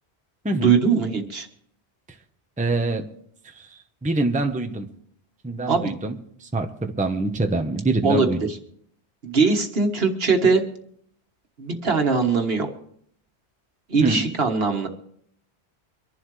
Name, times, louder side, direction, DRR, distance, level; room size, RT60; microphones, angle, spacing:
voice 1, 0.5-1.5 5.7-5.9 8.0-8.3 9.2-10.6 11.6-12.7 13.9-14.9, right 4 dB, 60° right, 4 dB, 1.6 m, -21 dB
voice 2, 2.6-3.1 3.5-4.9 5.4-8.4 14.0-14.3, right 2 dB, 10° right, 5 dB, 0.8 m, -25 dB
25.0 x 11.5 x 3.2 m, 0.68 s
omnidirectional pair, 1.1 m